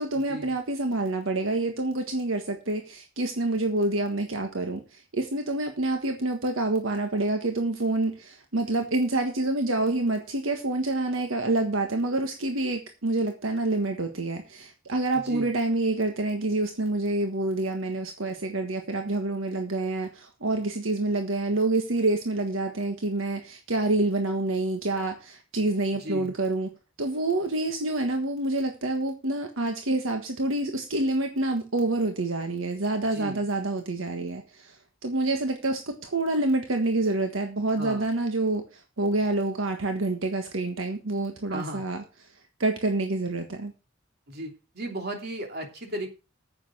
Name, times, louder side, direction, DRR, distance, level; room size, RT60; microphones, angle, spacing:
voice 1, 0.0-26.7 27.0-42.0 42.6-43.7, right 2 dB, 80° right, 5 dB, 1.5 m, -27 dB
voice 2, 26.0-26.3 33.1-33.4 37.8-38.1 41.5-41.8 44.3-46.1, right 1 dB, 50° right, 3 dB, 3.1 m, -35 dB
9.8 x 7.9 x 6.2 m, 0.31 s
head